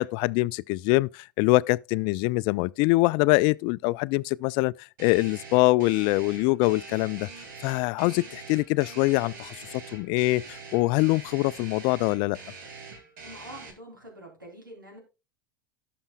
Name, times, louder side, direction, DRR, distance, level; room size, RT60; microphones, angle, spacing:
voice 1, 0.0-4.7 5.0-7.3 7.6-12.4, left 22 dB, 50° left, 0.4 m, -24 dB
sound 1, 5.0-13.7, right 4 dB, 65° right, 2.4 m, -44 dB
voice 2, 13.2-15.0, right 1 dB, 85° right, 3.8 m, -45 dB
17.5 x 6.1 x 2.3 m
figure-of-eight pair, 85°, 11 cm